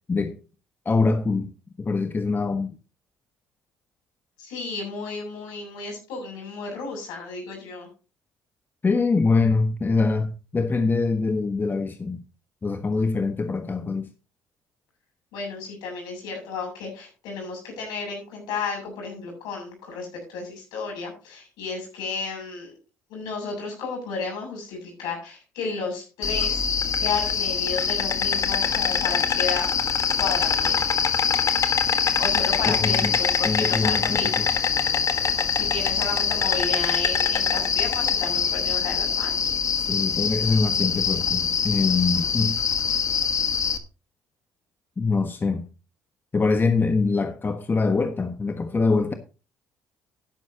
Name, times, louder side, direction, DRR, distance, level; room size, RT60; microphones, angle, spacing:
voice 1, 0.1-0.4 0.8-1.5 1.8-2.8 8.8-12.2 12.6-14.1 32.6-33.2 33.4-34.5 39.8-42.6 45.0-45.7 46.3-49.1, left 4 dB, 30° left, 1.4 m, -24 dB
voice 2, 4.4-7.9 15.3-22.7 23.1-26.6 27.0-29.7 30.2-30.8 31.1-31.2 32.2-34.3 35.5-39.5, left 4 dB, 75° left, 7.5 m, -32 dB
Insect, 26.2-43.8, left 7 dB, 50° left, 1.5 m, -24 dB
12.5 x 11.0 x 3.0 m
hypercardioid pair, 60°, 7 cm